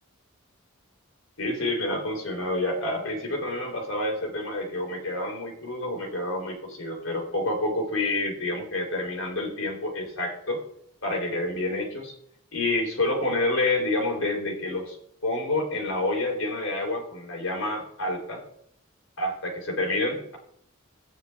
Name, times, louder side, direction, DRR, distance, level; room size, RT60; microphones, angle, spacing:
voice 1, 1.4-10.6 11.0-12.1 12.5-15.0 15.2-18.4 19.2-20.4, left 2 dB, 70° left, 0 dB, 3.4 m, -28 dB
14.5 x 9.4 x 3.4 m, 0.71 s
head